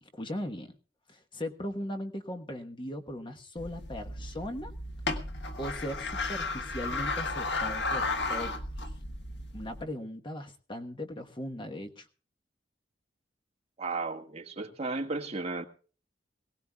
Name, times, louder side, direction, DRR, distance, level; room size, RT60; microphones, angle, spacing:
voice 1, 0.0-0.7 1.1-4.7 5.6-8.9 9.5-12.1, left 1 dB, 30° left, 5 dB, 1.2 m, -38 dB
sound 1, 3.6-9.8, left 2 dB, 85° left, 1.6 m, -34 dB
voice 2, 13.8-15.7, right 3 dB, 35° right, 4 dB, 1.8 m, -34 dB
22.0 x 17.5 x 2.3 m, 0.39 s
head